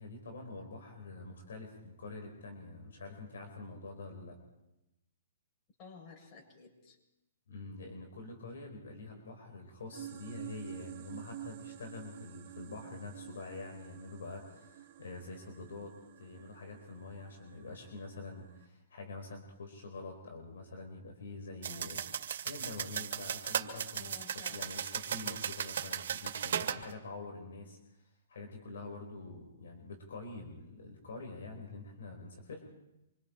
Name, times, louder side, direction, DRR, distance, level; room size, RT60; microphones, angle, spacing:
voice 1, 0.0-4.4 7.5-22.0 22.4-24.2 24.5-32.7, left 3 dB, 70° left, 3 dB, 4.6 m, -46 dB
voice 2, 5.8-7.0 21.7-22.0 24.0-24.7, left 4 dB, 30° left, 1 dB, 7.2 m, -54 dB
sound 1, 9.9-18.7, right 12 dB, 40° right, 2.6 m, -50 dB
sound 2, 21.6-26.8, right 8 dB, 60° right, 2.1 m, -37 dB
26.0 x 25.0 x 4.5 m, 0.91 s
hypercardioid pair, 130°, 0 cm